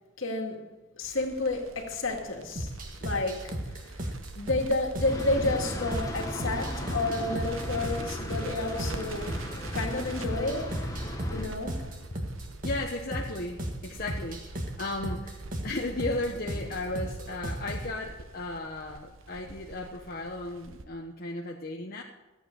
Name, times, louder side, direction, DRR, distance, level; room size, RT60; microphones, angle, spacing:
voice 1, 0.2-0.6 1.0-2.7 3.0-3.6 3.8-3.9 4.3-9.4 9.7-10.7 11.3-11.9, left 2 dB, 65° left, 2.2 m, -30 dB
Crackle, 1.0-20.8, right 3 dB, 70° right, 1.0 m, -46 dB
sound 1, 2.6-17.9, right 1 dB, 40° right, 1.6 m, -36 dB
sound 2, 5.0-11.4, equal, 15° left, 1.4 m, -36 dB
voice 2, 12.6-22.0, left 2 dB, 45° left, 1.0 m, -35 dB
14.0 x 8.2 x 6.6 m
head